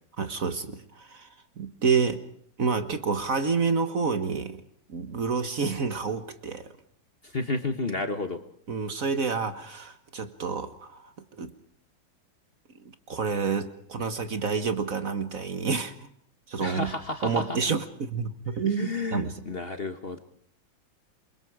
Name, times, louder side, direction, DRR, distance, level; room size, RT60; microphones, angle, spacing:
voice 1, 0.2-2.2 2.6-4.6 4.9-6.7 8.7-11.5 12.7-16.1 16.5-16.9 17.2-19.4, right 5 dB, 50° right, 10 dB, 1.6 m, -29 dB
voice 2, 7.2-8.4 16.6-17.4 18.5-20.2, left 2 dB, 35° left, 8 dB, 1.4 m, -31 dB
28.0 x 23.5 x 4.9 m, 0.65 s
omnidirectional pair, 2.1 m